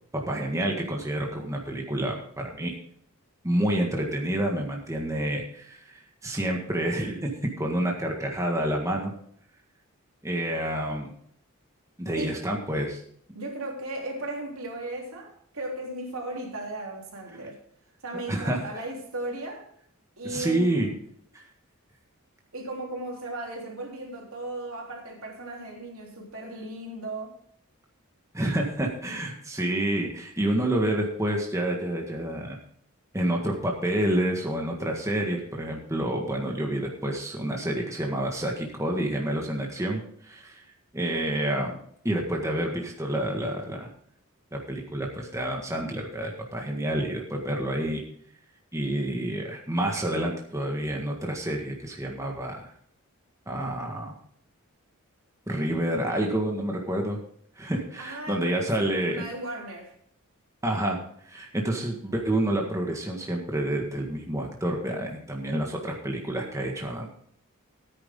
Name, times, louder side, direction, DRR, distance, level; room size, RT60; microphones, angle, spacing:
voice 1, 0.3-2.7 3.4-9.1 10.2-11.1 12.0-13.0 18.3-18.6 20.2-20.9 28.3-32.6 33.1-40.5 40.9-43.9 44.5-48.0 48.7-52.7 53.5-54.2 55.5-57.2 57.6-59.2 60.6-67.1, right 1 dB, 15° right, 1.7 m, -28 dB
voice 2, 13.3-17.6 18.0-19.7 20.2-21.0 22.5-27.4 58.0-59.9, right 1 dB, 75° right, 3.4 m, -36 dB
15.0 x 9.5 x 3.7 m
head